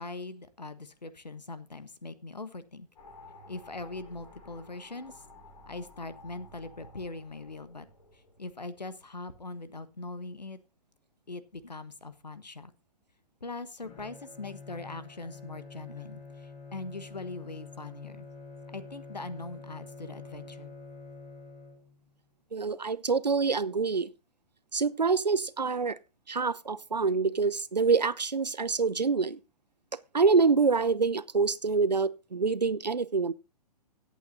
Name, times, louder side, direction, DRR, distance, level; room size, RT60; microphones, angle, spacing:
voice 1, 0.0-2.9 3.5-5.2 5.7-7.8 8.4-10.6 11.3-12.7 13.4-18.3 18.7-20.7, left 3 dB, 85° left, 1.3 m, -41 dB
sound 1, 3.0-9.4, left 1 dB, 55° left, 5.0 m, -53 dB
Bowed string instrument, 13.8-22.1, left 4 dB, 40° left, 7.9 m, -47 dB
voice 2, 22.5-24.1 24.7-26.0 26.3-29.4 30.1-33.3, right 4 dB, 85° right, 0.7 m, -26 dB
17.0 x 8.4 x 2.7 m
figure-of-eight pair, 120°, 21 cm